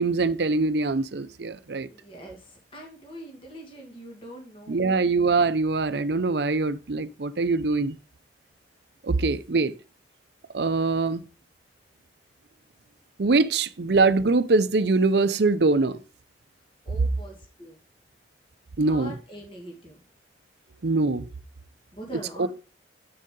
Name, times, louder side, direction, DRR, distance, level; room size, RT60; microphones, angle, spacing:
voice 1, 0.0-1.9 4.7-8.0 9.0-9.7 10.5-11.2 13.2-16.0 18.8-19.1 20.8-21.3 22.4-22.5, right 3 dB, 65° right, 0.6 m, -23 dB
voice 2, 1.8-5.0 16.8-17.8 18.9-20.0 21.9-22.5, right 1 dB, 30° left, 2.1 m, -43 dB
8.5 x 6.6 x 3.8 m
head